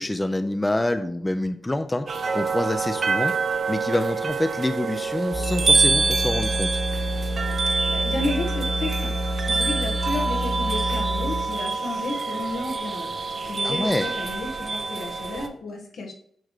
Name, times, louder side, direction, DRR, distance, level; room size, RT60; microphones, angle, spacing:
voice 1, 0.0-2.1 2.3-3.3 3.7-6.8 13.6-14.1, left 1 dB, 15° left, 9 dB, 0.6 m, -26 dB
sound 1, 2.1-15.5, right 4 dB, 55° right, 0.8 m, -26 dB
sound 2, 5.3-11.8, equal, 50° left, 2.1 m, -28 dB
voice 2, 7.6-9.1 9.4-16.1, left 2 dB, 80° left, 1 dB, 1.6 m, -32 dB
8.5 x 3.2 x 6.5 m, 0.64 s
cardioid pair, 70°, 0 cm